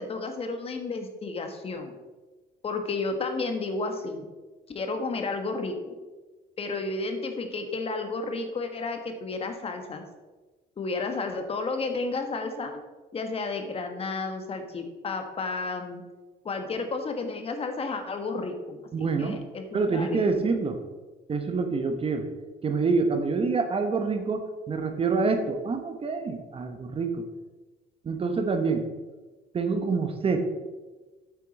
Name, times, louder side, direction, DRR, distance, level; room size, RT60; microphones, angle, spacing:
voice 1, 0.0-1.9 2.6-4.3 4.7-5.9 6.6-10.0 10.8-12.8 13.1-16.0 16.4-20.4, left 3 dB, 35° left, 6 dB, 1.3 m, -32 dB
voice 2, 18.9-19.4 19.7-20.8 21.3-22.3 22.6-27.2 28.0-28.9 29.5-30.5, right 4 dB, 35° right, 7 dB, 1.0 m, -26 dB
8.5 x 8.3 x 4.1 m, 1.2 s
cardioid pair, 110°, 17 cm